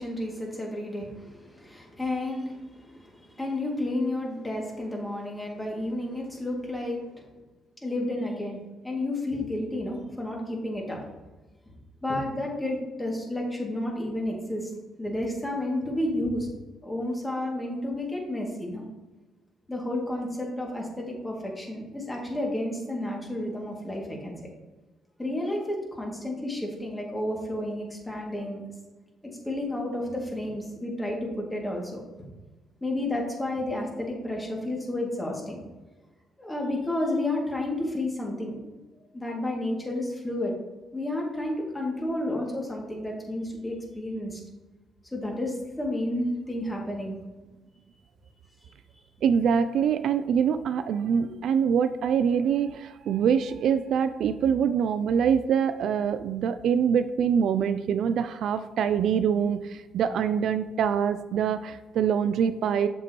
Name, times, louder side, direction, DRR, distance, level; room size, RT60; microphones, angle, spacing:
voice 1, 0.0-7.3 7.8-8.6 8.8-11.0 12.0-14.7 15.0-16.5 16.8-18.8 19.7-24.3 25.2-28.6 29.2-32.0 32.8-35.6 36.4-38.7 39.1-40.5 40.9-44.4 45.1-47.2 48.6-48.7, left 1 dB, 15° left, -2 dB, 2.4 m, -31 dB
voice 2, 49.2-62.9, right 7 dB, 70° right, 11 dB, 0.4 m, -24 dB
7.3 x 7.2 x 3.0 m, 1.2 s
cardioid pair, 90°, 0 cm